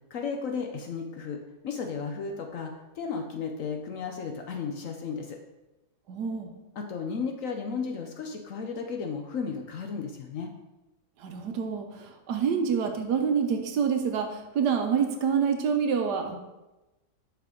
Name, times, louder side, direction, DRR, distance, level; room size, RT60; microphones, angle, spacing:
voice 1, 0.1-1.4 1.6-5.4 6.8-10.5, left 5 dB, 60° left, 4 dB, 0.9 m, -34 dB
voice 2, 6.1-6.5 11.2-16.4, right 6 dB, 75° right, 5 dB, 1.4 m, -27 dB
6.8 x 5.9 x 3.7 m, 1.0 s
omnidirectional pair, 1.8 m